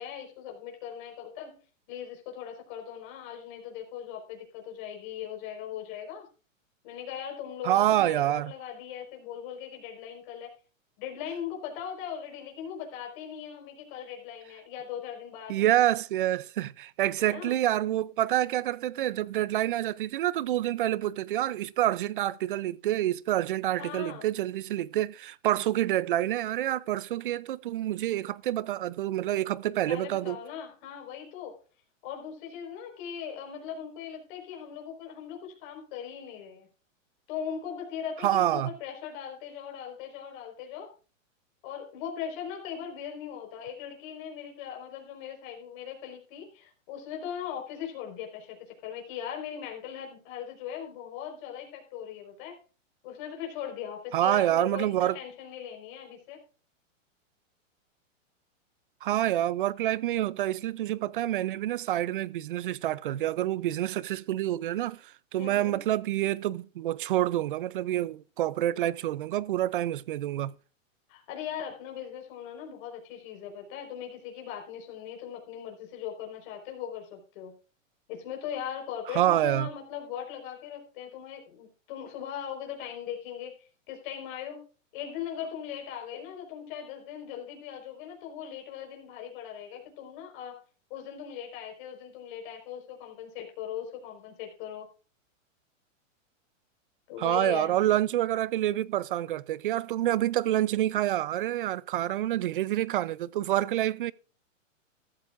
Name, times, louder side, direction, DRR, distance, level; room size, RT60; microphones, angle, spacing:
voice 1, 0.0-1.6 1.9-6.3 6.8-10.5 11.0-15.7 17.2-17.5 23.8-24.3 29.9-31.6 32.0-36.7 37.3-40.9 41.6-52.6 53.0-56.4 65.4-65.8 71.1-77.5 78.1-84.6 84.9-90.6 90.9-94.9 97.1-97.8, left 9 dB, 40° left, 4.5 m, -39 dB
voice 2, 7.6-8.5 15.5-30.4 38.2-38.7 54.1-55.2 59.0-70.6 79.1-79.7 97.2-104.1, right 13 dB, 45° right, 0.4 m, -27 dB
14.0 x 13.5 x 2.5 m
hypercardioid pair, 155°, 40 cm